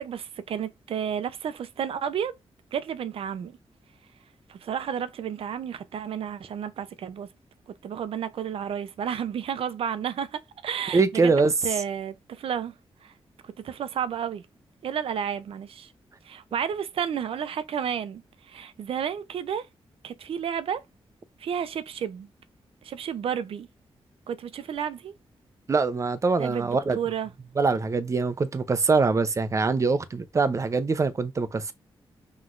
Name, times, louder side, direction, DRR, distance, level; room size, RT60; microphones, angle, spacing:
voice 1, 0.0-2.4 2.7-3.6 4.5-7.3 7.7-11.3 11.6-12.7 13.0-13.1 13.4-14.4 14.8-15.9 16.2-19.7 20.0-20.8 21.4-22.3 22.8-23.7 24.3-25.1 26.4-27.3, right 8 dB, 85° right, 0.6 m, -31 dB
voice 2, 10.9-11.5 25.7-27.0 27.6-31.7, right 4 dB, 35° right, 0.6 m, -23 dB
5.9 x 3.1 x 2.5 m
wide cardioid pair, 130°, 9 cm